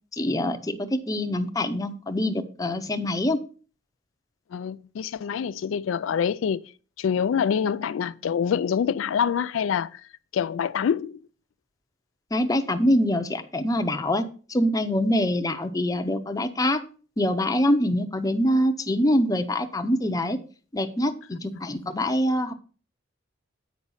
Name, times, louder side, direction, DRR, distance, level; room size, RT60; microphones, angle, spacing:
voice 1, 0.1-3.4 12.3-16.8 17.2-20.4 20.7-22.5, left 1 dB, 20° left, 0.7 m, -24 dB
voice 2, 4.5-6.6 7.0-10.0 10.3-11.2, left 7 dB, 85° left, 0.3 m, -26 dB
8.3 x 5.2 x 5.5 m
head